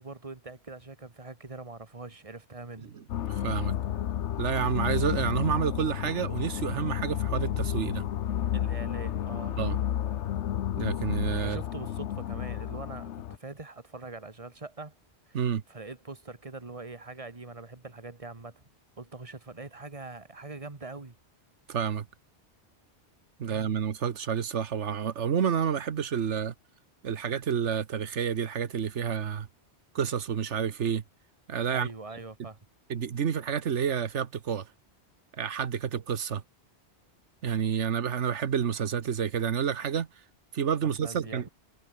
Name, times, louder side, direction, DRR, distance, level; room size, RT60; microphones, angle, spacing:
voice 1, 0.0-2.9 8.5-9.7 11.4-14.9 15.3-15.4 15.7-18.6 19.0-21.2 31.7-32.6 40.8-41.4, right 3 dB, 30° right, 2.0 m, -43 dB
sound 1, 3.1-13.4, left 10 dB, 85° left, 1.1 m, -31 dB
voice 2, 3.3-3.7 4.4-8.0 9.6-9.8 10.8-11.6 15.3-15.6 21.7-22.0 23.4-26.5 27.0-29.5 29.9-31.0 31.5-31.9 32.9-34.7 35.3-36.4 37.4-40.1 40.5-41.5, right 7 dB, 90° right, 1.4 m, -29 dB
omnidirectional pair, 1.2 m